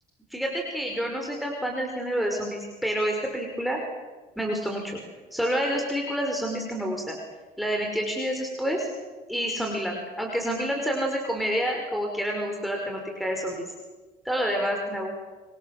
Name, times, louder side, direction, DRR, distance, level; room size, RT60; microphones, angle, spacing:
voice 1, 0.3-3.8 4.4-5.0 5.3-7.2 7.6-8.9 9.3-13.7 14.3-15.1, equal, ahead, 1 dB, 5.5 m, -28 dB
26.5 x 26.0 x 7.4 m, 1.3 s
cardioid pair, 110°, 17 cm